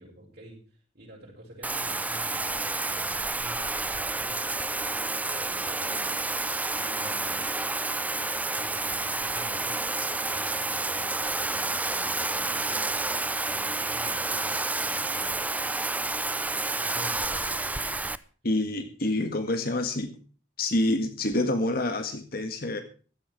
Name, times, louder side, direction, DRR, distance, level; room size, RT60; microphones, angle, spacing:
voice 1, 0.0-6.1 6.7-7.7 8.5-9.8 10.2-13.0 13.4-15.7 16.8-18.3 18.6-18.8, equal, 50° right, -5 dB, 6.3 m, -48 dB
Bathtub (filling or washing), 1.6-18.2, right 3 dB, 10° right, 0.5 m, -29 dB
voice 2, 18.4-20.2 20.6-22.8, left 1 dB, 50° left, 7 dB, 1.8 m, -27 dB
15.5 x 12.5 x 4.7 m, 0.40 s
head